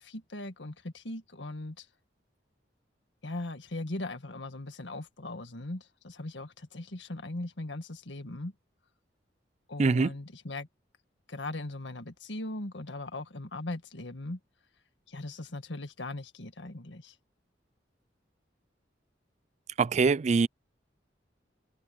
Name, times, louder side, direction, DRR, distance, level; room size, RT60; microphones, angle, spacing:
voice 1, 0.0-1.9 3.2-8.5 9.7-10.7 11.3-14.4 15.1-17.1, left 2 dB, 85° left, 1.8 m, -39 dB
voice 2, 9.8-10.1 19.8-20.5, right 4 dB, 40° right, 0.4 m, -23 dB
head